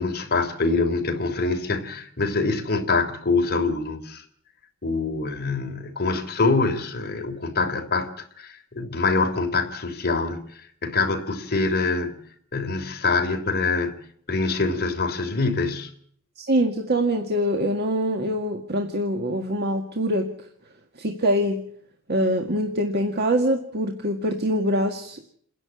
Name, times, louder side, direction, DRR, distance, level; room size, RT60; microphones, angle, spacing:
voice 1, 0.0-4.2 4.8-12.1 12.5-14.0 14.3-15.9, left 3 dB, 45° left, 3.2 m, -25 dB
voice 2, 16.4-20.3 21.0-21.6 22.1-25.2, equal, 50° right, 1.9 m, -24 dB
29.0 x 11.0 x 8.3 m
head